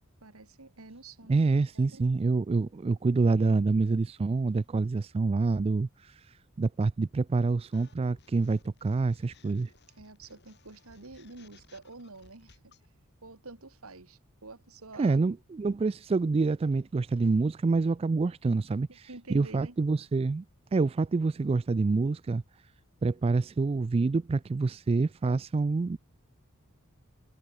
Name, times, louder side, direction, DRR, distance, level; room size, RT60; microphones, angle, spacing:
voice 1, 0.2-1.4 1.7-2.0 10.0-12.6 13.2-15.2 18.9-19.8, right 3 dB, 70° right, 2.2 m, -48 dB
voice 2, 1.3-9.7 15.0-20.4 20.7-22.4 23.0-26.0, right 3 dB, 25° right, 0.3 m, -27 dB
sound 1, 7.7-12.9, left 3 dB, 50° left, 5.4 m, -60 dB
head